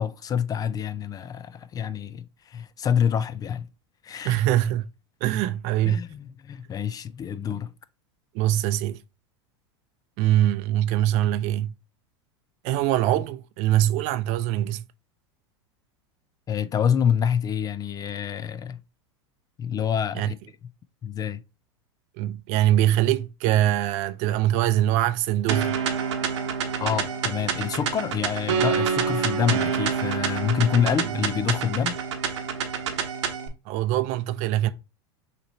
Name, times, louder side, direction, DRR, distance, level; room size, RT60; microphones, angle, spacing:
voice 1, 0.0-3.7 4.0-4.4 5.9-7.7 16.5-18.8 19.6-20.4 21.0-21.4 26.8-32.0, left 8 dB, 25° left, 0.4 m, -27 dB
voice 2, 4.2-4.9 5.2-6.0 8.3-9.0 10.2-11.7 12.6-14.8 20.1-20.3 22.2-25.8 33.7-34.7, right 13 dB, 55° right, 0.5 m, -23 dB
sound 1, 25.5-33.5, right 7 dB, 85° right, 1.0 m, -27 dB
6.4 x 3.0 x 2.7 m
hypercardioid pair, 110°, 14 cm